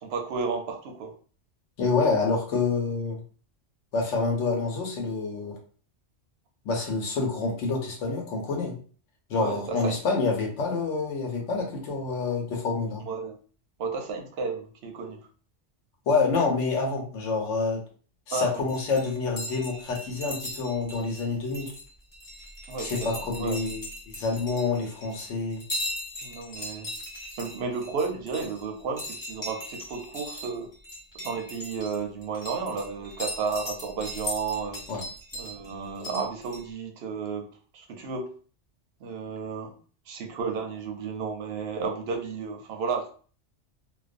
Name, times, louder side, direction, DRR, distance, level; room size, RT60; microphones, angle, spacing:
voice 1, 0.0-1.1 9.3-10.0 13.1-13.4 13.8-15.3 18.3-18.6 22.7-23.6 26.2-26.9 27.4-30.7 31.2-34.8 35.3-37.5 37.7-38.3 39.0-39.7 40.1-43.1, right 5 dB, 65° right, 4 dB, 0.7 m, -32 dB
voice 2, 1.8-3.2 3.9-5.6 6.6-8.8 9.3-13.0 16.1-17.8 18.3-21.7 22.8-25.6 34.9-35.0, left 4 dB, 75° left, 1 dB, 1.1 m, -27 dB
sound 1, 18.7-36.6, left 1 dB, 20° left, 0.8 m, -38 dB
2.4 x 2.2 x 2.4 m, 0.41 s
omnidirectional pair, 1.2 m